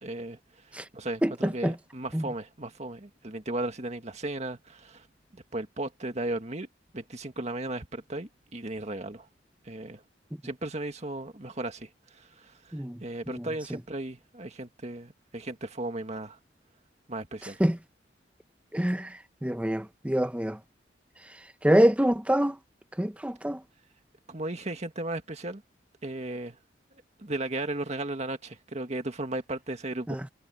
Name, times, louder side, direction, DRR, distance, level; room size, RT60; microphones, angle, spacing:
voice 1, 0.0-5.1 5.3-6.7 6.9-9.3 9.6-10.0 10.4-16.4 17.1-17.6 24.3-25.6 26.0-26.6 27.2-30.2, right 2 dB, 40° right, 1.8 m, -36 dB
voice 2, 1.2-1.7 2.1-2.2 12.7-13.0 13.3-13.4 17.6-17.8 18.7-20.6 21.6-22.6 23.0-23.6 30.1-30.2, equal, 5° right, 0.7 m, -25 dB
head